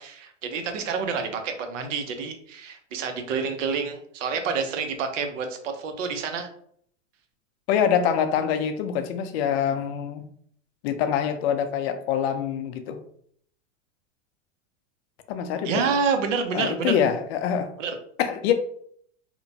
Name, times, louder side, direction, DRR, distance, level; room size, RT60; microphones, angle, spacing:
voice 1, 0.0-6.5 15.6-17.0 17.8-18.0, right 5 dB, 80° right, 0.7 m, -28 dB
voice 2, 7.7-10.2 10.8-13.0 15.3-16.0 16.5-17.7 18.2-18.5, left 8 dB, 55° left, 0.5 m, -25 dB
2.9 x 2.1 x 2.6 m
supercardioid pair, 125°, 37 cm